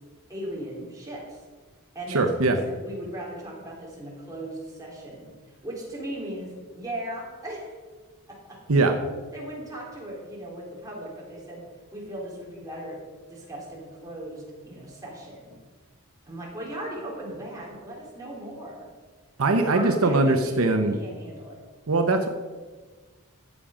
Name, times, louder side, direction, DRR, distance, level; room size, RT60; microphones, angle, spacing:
voice 1, 0.3-1.4 1.9-7.8 8.3-8.6 9.3-11.6 11.9-13.0 13.3-15.6 16.2-18.9 19.5-21.6, right 1 dB, 15° right, -4 dB, 3.5 m, -38 dB
voice 2, 2.1-2.6 8.7-9.0 19.4-21.0 21.9-22.3, right 2 dB, 75° right, 5 dB, 0.9 m, -21 dB
14.0 x 7.3 x 5.0 m, 1.4 s
head